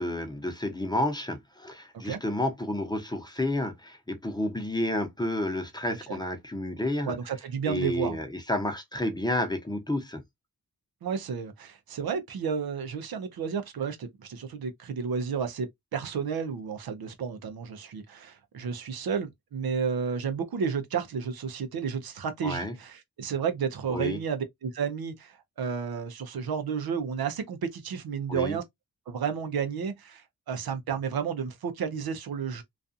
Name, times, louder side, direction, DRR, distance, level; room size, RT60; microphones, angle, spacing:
voice 1, 0.0-7.2 7.7-10.2 22.4-22.7 23.9-24.2 28.3-28.6, left 1 dB, 10° left, 0.7 m, -30 dB
voice 2, 5.9-6.2 7.0-8.2 11.0-28.6 29.1-32.6, right 6 dB, 90° right, 0.6 m, -32 dB
2.4 x 2.3 x 2.5 m
cardioid pair, 65°, 36 cm